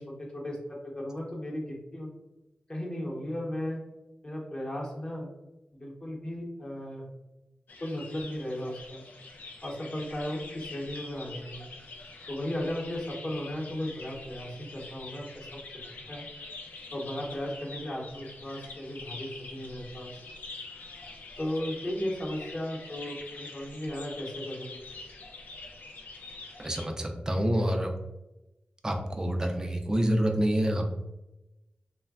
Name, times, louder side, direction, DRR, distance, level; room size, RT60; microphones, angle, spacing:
voice 1, 0.0-2.1 2.7-3.8 4.2-5.3 5.7-7.1 7.8-9.0 9.6-11.6 12.2-15.6 16.1-16.3 16.9-20.2 21.4-24.8, left 1 dB, 30° left, -3 dB, 0.9 m, -35 dB
sound 1, 7.7-26.9, left 3 dB, 85° left, 0.3 m, -45 dB
voice 2, 26.6-27.9 28.8-30.9, equal, 20° right, 3 dB, 0.4 m, -27 dB
3.1 x 2.2 x 2.3 m, 0.97 s
cardioid pair, 55°, 3 cm